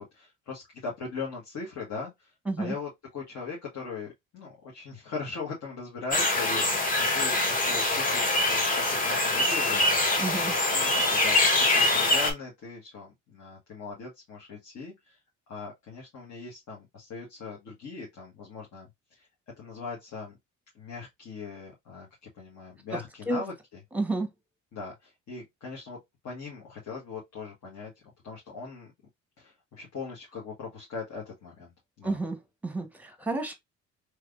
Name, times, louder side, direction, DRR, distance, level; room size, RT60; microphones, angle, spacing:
voice 1, 0.0-10.3 10.7-15.2 15.5-19.3 19.6-20.4 20.7-22.1 22.3-23.5 24.7-26.0 26.2-28.9 29.4-31.7 32.0-32.2, left 4 dB, 65° left, 1.5 m, -40 dB
sound 1, 6.1-12.3, left 2 dB, 25° left, 1.1 m, -24 dB
voice 2, 10.2-10.5 23.3-23.4 23.9-24.3 32.0-32.4 32.6-33.5, right 2 dB, 5° right, 1.0 m, -30 dB
3.3 x 3.1 x 2.4 m
cardioid pair, 90°, 30 cm